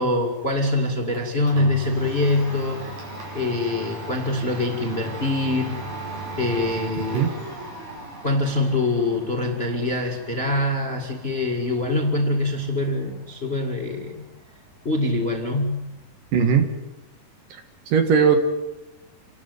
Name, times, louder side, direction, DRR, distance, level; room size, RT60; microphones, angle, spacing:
voice 1, 0.0-2.9 3.3-5.8 6.4-7.3 8.2-14.2 14.8-15.9, left 2 dB, 20° left, 2 dB, 1.7 m, -24 dB
Domestic sounds home sounds, 0.6-16.5, right 2 dB, 80° right, 7.6 m, -38 dB
voice 2, 16.3-16.7 17.5-17.6 17.9-18.4, right 6 dB, 65° right, 6 dB, 3.2 m, -18 dB
28.5 x 12.5 x 9.6 m, 0.99 s
omnidirectional pair, 4.3 m